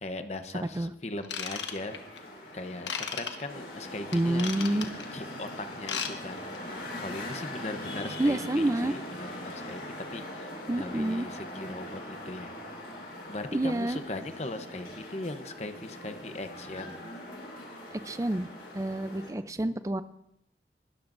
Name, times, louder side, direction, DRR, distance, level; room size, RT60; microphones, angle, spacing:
voice 1, 0.0-2.3 2.5-9.8 10.1-12.5 13.3-17.0, left 2 dB, 35° left, 8 dB, 0.9 m, -39 dB
Ratchet pawl / Tools, 1.2-2.2 2.9-3.3 4.1-5.0 5.7-6.1 6.4-6.6 7.1-7.2, left 7 dB, 80° left, 1.3 m, -34 dB
sound 1, 1.6-19.3, left 1 dB, 60° left, 5.2 m, -41 dB
voice 2, 4.1-4.9 8.2-8.9 10.7-11.3 13.5-14.0 17.9-18.5 18.7-20.0, right 1 dB, 20° right, 12 dB, 0.5 m, -28 dB
21.0 x 13.0 x 2.6 m, 0.77 s
head